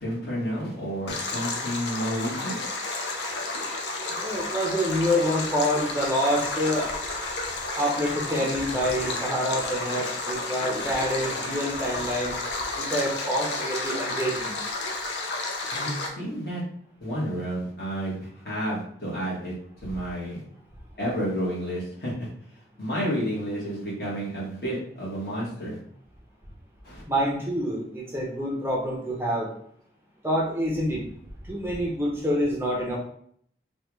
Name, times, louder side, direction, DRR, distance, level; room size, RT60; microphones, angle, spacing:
voice 1, 0.0-2.6 15.7-16.6 17.0-19.5 19.8-20.4 21.0-22.3 22.8-25.8 26.8-27.0, equal, 60° left, -6 dB, 1.5 m, -30 dB
Stream, 1.1-16.1, left 2 dB, 75° left, 0.6 m, -31 dB
voice 2, 4.1-6.9 7.8-12.4 12.7-14.6 27.1-29.5 30.2-31.0 31.4-33.0, equal, 15° right, -3 dB, 0.6 m, -27 dB
3.4 x 2.3 x 3.0 m, 0.63 s
head